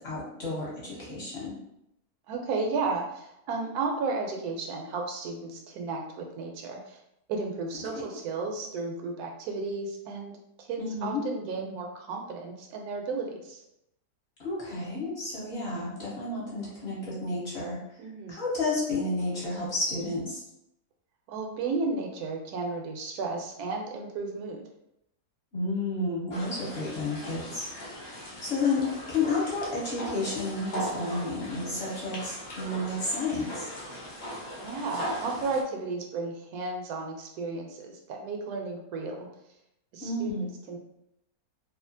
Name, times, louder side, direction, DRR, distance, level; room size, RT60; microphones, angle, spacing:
voice 1, 0.0-1.6 10.8-11.2 14.4-17.8 18.3-20.4 25.5-27.7 28.1-33.7 40.0-40.5, left 2 dB, 50° left, -7 dB, 1.0 m, -31 dB
voice 2, 2.3-7.0 7.3-10.3 10.6-13.6 18.0-18.4 21.3-24.6 34.6-39.3 39.9-40.8, right 3 dB, 85° right, 2 dB, 1.1 m, -33 dB
sound 1, 26.3-35.6, equal, 85° left, 0.4 m, -39 dB
2.7 x 2.4 x 2.6 m, 0.82 s
omnidirectional pair, 1.6 m